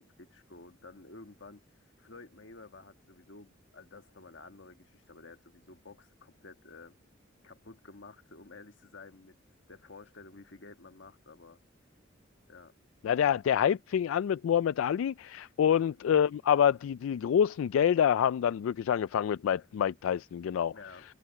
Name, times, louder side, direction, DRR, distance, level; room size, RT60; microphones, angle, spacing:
voice 1, 0.0-1.6 2.0-7.0 7.4-9.3 9.7-11.6 12.5-12.8 15.7-16.0 20.7-21.0, left 3 dB, 65° left, 1.5 m, -52 dB
voice 2, 13.0-20.7, left 8 dB, 85° left, 0.3 m, -27 dB
head